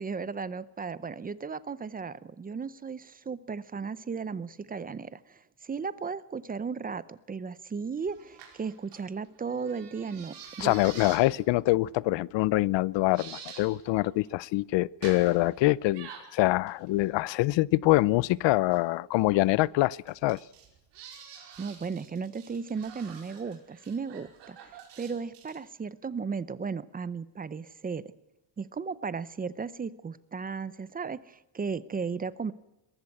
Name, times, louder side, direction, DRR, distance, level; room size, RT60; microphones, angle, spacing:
voice 1, 0.0-10.8 21.6-28.1 28.6-32.5, right 5 dB, 20° right, 0.6 m, -35 dB
sound 1, 8.1-11.3 11.9-12.1 12.6-12.7 13.1-13.7 13.9-14.4 15.0-15.5 15.9-17.4 18.5-18.8 20.1-25.6, right 7 dB, 75° right, 5.2 m, -48 dB
voice 2, 10.6-20.4, left 18 dB, 85° left, 0.6 m, -25 dB
22.0 x 14.5 x 8.5 m
cardioid pair, 155°, 42 cm